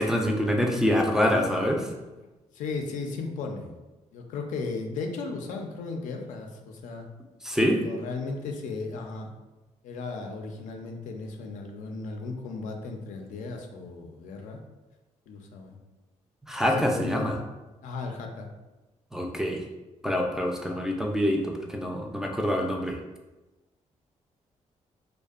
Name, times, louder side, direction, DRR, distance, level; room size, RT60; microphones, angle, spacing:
voice 1, 0.0-1.9 7.4-7.8 16.5-17.4 19.1-19.6 20.0-23.0, equal, 5° right, 0 dB, 0.3 m, -25 dB
voice 2, 2.5-3.7 4.1-7.1 7.7-9.3 9.8-14.6 15.3-15.7 16.6-17.4 17.8-18.5, left 3 dB, 85° left, 3 dB, 0.4 m, -35 dB
2.6 x 2.1 x 2.3 m, 1.1 s
cardioid pair, 85°, 13 cm